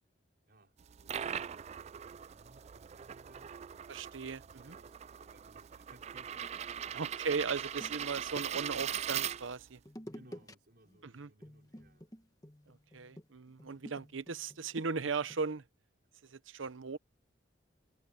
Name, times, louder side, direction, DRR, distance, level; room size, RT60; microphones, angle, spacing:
voice 1, 0.5-4.1 4.4-7.0 10.1-12.2, right 1 dB, 55° right, 4.7 m, -64 dB
sound 1, 0.8-9.8, right 9 dB, 35° right, 0.3 m, -40 dB
voice 2, 3.9-4.8 6.9-9.8 11.0-11.3 12.7-15.6 16.2-17.0, right 5 dB, 90° right, 0.8 m, -38 dB
sound 2, 7.5-8.8 9.8-10.5 10.8-11.1 11.4-15.4, equal, 20° left, 1.3 m, -51 dB
head